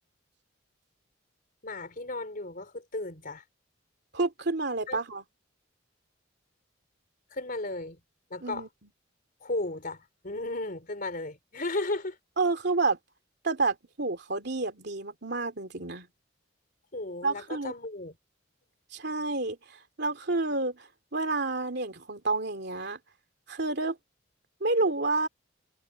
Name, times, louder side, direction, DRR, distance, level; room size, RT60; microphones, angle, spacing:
voice 1, 1.6-3.4 4.9-5.0 7.3-8.0 8.3-8.7 9.4-12.2 16.9-18.1, left 2 dB, 45° left, 4.0 m, -35 dB
voice 2, 4.1-5.2 8.4-8.7 12.4-13.0 13.4-16.1 17.2-17.7 18.9-23.0 23.5-24.0 24.6-25.3, right 3 dB, 60° right, 2.8 m, -29 dB
head